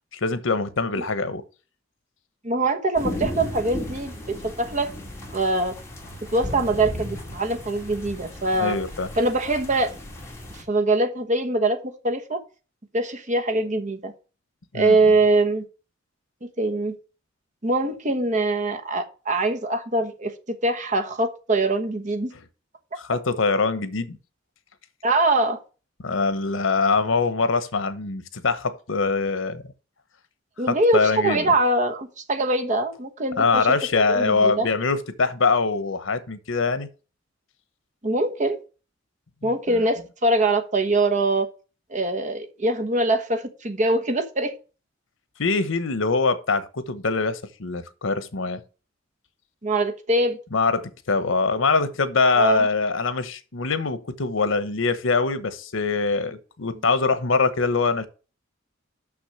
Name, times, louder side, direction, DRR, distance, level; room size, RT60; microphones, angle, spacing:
voice 1, 0.1-1.4 8.6-9.1 14.7-15.0 23.0-24.2 26.0-29.6 30.7-31.4 33.4-36.9 39.4-39.8 45.4-48.6 50.5-58.1, left 4 dB, 85° left, 1.0 m, -23 dB
voice 2, 2.4-4.9 5.3-5.8 6.3-8.8 9.2-9.9 10.5-11.8 12.0-12.4 12.9-14.1 14.7-15.6 16.6-16.9 17.6-20.3 20.6-22.3 25.0-25.6 30.6-33.7 34.1-34.7 38.0-38.6 39.4-41.5 41.9-44.5 49.6-50.4 52.3-52.7, right 2 dB, 40° right, 1.2 m, -23 dB
sound 1, 3.0-10.6, left 1 dB, 15° left, 2.4 m, -35 dB
6.2 x 6.2 x 6.5 m
head